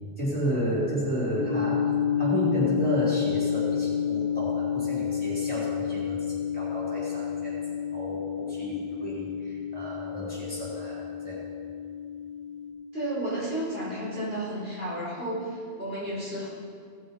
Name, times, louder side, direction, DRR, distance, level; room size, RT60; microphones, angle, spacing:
voice 1, 0.2-1.9 2.2-7.6 7.9-11.4, right 1 dB, 10° left, -7 dB, 3.9 m, -32 dB
sound 1, 1.4-12.7, left 8 dB, 50° right, 1.6 m, -30 dB
voice 2, 12.9-16.5, right 1 dB, 70° right, -8 dB, 4.3 m, -32 dB
17.5 x 6.9 x 5.3 m, 2.2 s
omnidirectional pair, 1.0 m